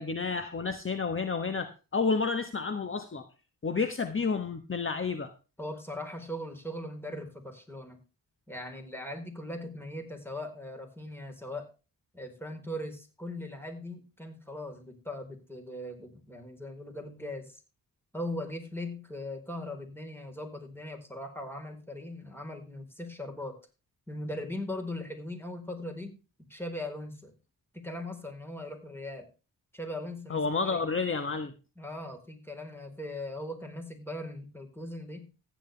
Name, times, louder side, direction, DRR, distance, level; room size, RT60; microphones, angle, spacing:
voice 1, 0.0-3.2 3.6-5.3 30.3-31.5, left 4 dB, 35° left, 8 dB, 1.3 m, -30 dB
voice 2, 5.6-8.0 8.5-11.7 12.1-17.6 18.1-23.6 24.1-26.1 26.5-27.3 27.7-29.3 29.7-30.8 31.8-35.2, left 1 dB, 5° left, 4 dB, 4.3 m, -39 dB
15.0 x 10.0 x 3.4 m, 0.32 s
cardioid pair, 70°, 35 cm